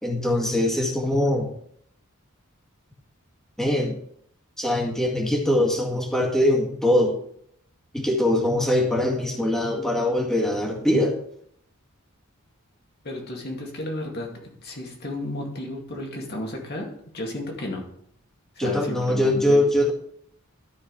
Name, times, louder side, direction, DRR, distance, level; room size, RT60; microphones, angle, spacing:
voice 1, 0.0-1.5 3.6-4.0 4.6-7.2 7.9-11.1 18.6-19.9, left 1 dB, ahead, -2 dB, 2.0 m, -22 dB
voice 2, 13.0-14.3 14.6-17.8 18.6-19.7, left 1 dB, 50° left, 0 dB, 2.2 m, -33 dB
13.0 x 4.8 x 4.7 m, 0.68 s
head